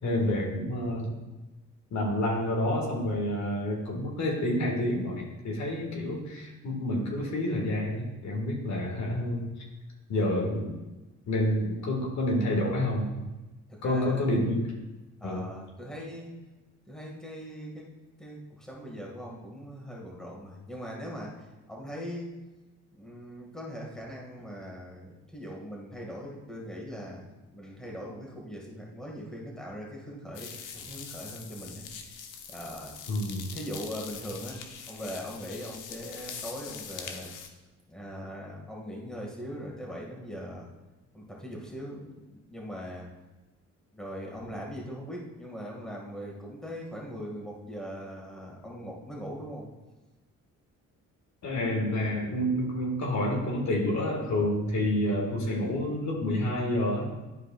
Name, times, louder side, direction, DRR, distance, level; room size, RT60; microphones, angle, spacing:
voice 1, 0.0-1.1 1.9-9.4 10.1-10.8 11.3-13.1 13.8-14.6 15.2-15.5 33.1-33.5 51.4-57.3, left 1 dB, 65° left, -2 dB, 1.9 m, -28 dB
voice 2, 13.7-14.4 15.2-16.3 16.9-17.9 18.2-21.3 21.7-22.3 23.0-32.2 32.5-32.9 33.5-34.6 34.9-37.3 37.9-40.7 41.1-43.1 43.9-49.7, equal, ahead, -3 dB, 2.0 m, -40 dB
sound 1, 30.3-37.5, left 6 dB, 85° left, 0.9 m, -43 dB
12.0 x 4.8 x 2.5 m, 1.1 s
cardioid pair, 90°, 30 cm